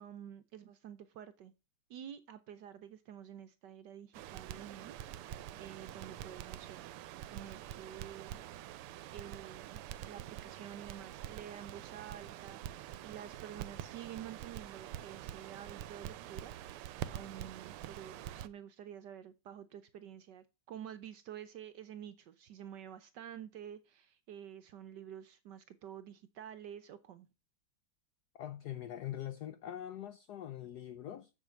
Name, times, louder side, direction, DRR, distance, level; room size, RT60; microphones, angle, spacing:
voice 1, 0.0-1.5 1.9-8.4 9.1-9.8 10.0-27.3, right 9 dB, 70° right, 1.1 m, -49 dB
Crackle, 4.1-18.5, right 12 dB, 85° right, 1.6 m, -46 dB
voice 2, 28.3-31.3, left 11 dB, 75° left, 0.9 m, -43 dB
7.4 x 7.3 x 5.1 m
omnidirectional pair, 2.4 m